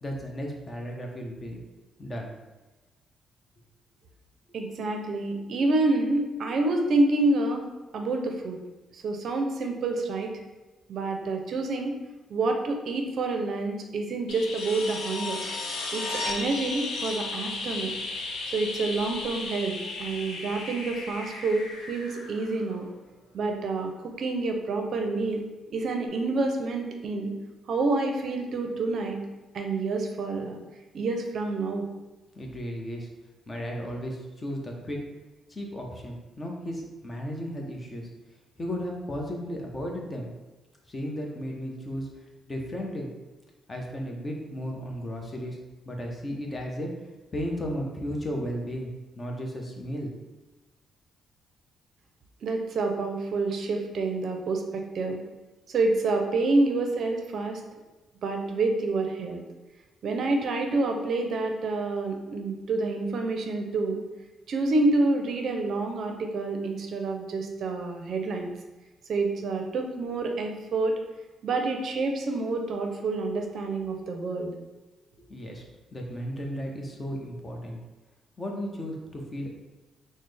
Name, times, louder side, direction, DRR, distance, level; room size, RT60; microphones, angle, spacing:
voice 1, 0.0-1.6 2.0-2.3 32.3-33.1 33.5-35.0 35.5-38.1 38.6-40.3 40.9-42.1 42.5-43.1 43.7-45.6 45.9-47.0 47.3-50.1 75.2-75.6 75.9-77.8 78.4-79.5, equal, 25° left, 0 dB, 0.7 m, -34 dB
voice 2, 4.5-8.6 8.9-10.3 10.9-12.0 12.3-15.4 15.9-17.9 18.5-22.9 23.3-23.9 24.2-25.4 25.7-27.3 27.7-29.2 29.5-30.6 30.9-31.9 52.4-55.2 55.7-57.6 58.2-59.4 60.0-64.0 64.5-68.5 69.1-71.0 71.4-74.6, right 3 dB, 60° right, 4 dB, 0.5 m, -28 dB
sound 1, 14.3-23.0 25.3-25.4, left 3 dB, 80° left, 0.6 m, -35 dB
4.0 x 2.0 x 3.3 m, 1.1 s
cardioid pair, 90°, 0 cm